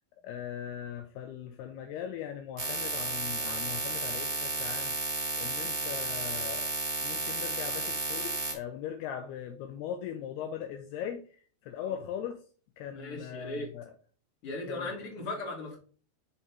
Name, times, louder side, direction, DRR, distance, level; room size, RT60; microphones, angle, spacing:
voice 1, 0.2-6.7 7.0-12.4 12.8-13.9 14.7-14.9, left 9 dB, 85° left, 2.4 m, -40 dB
sound 1, 2.6-8.5, right 3 dB, 60° right, 1.1 m, -33 dB
voice 2, 12.9-13.7 14.4-15.8, left 2 dB, 40° left, 2.6 m, -38 dB
6.7 x 5.5 x 3.4 m
omnidirectional pair, 5.1 m